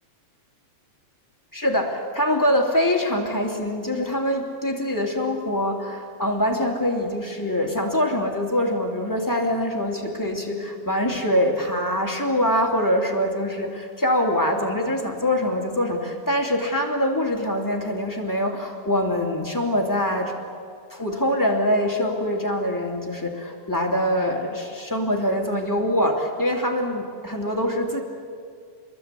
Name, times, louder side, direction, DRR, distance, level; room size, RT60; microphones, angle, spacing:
voice 1, 1.5-20.4 20.9-28.0, left 1 dB, 5° left, -1 dB, 2.3 m, -24 dB
26.5 x 22.0 x 8.3 m, 2.2 s
omnidirectional pair, 3.5 m